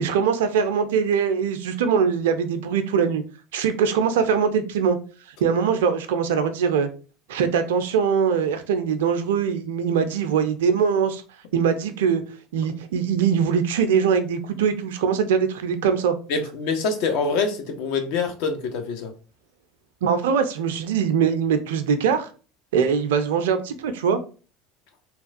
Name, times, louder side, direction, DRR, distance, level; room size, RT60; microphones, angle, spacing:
voice 1, 0.0-3.2 3.5-5.0 5.4-6.9 7.3-11.2 11.5-12.2 12.5-16.1 20.0-22.3 22.7-24.2, right 6 dB, 70° right, 0.3 m, -22 dB
voice 2, 16.3-19.1, left 4 dB, 65° left, 0.5 m, -25 dB
2.9 x 2.3 x 2.5 m
hypercardioid pair, 70°, 0 cm